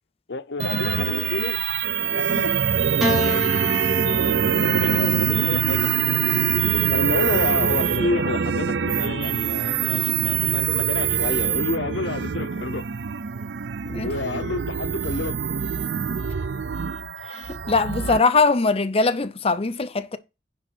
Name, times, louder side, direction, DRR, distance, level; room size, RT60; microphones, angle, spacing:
voice 1, 0.3-1.6 2.1-2.9 3.2-3.4 4.1-4.4 4.8-5.9 6.9-12.8 14.0-15.4, left 3 dB, 75° left, 0.8 m, -30 dB
sound 1, 0.6-18.2, right 8 dB, 80° right, 0.5 m, -24 dB
Piano, 3.0-7.5 8.5-9.3, left 1 dB, ahead, 2.1 m, -31 dB
voice 2, 17.2-20.2, left 4 dB, 35° left, 0.6 m, -22 dB
10.5 x 3.7 x 6.1 m
head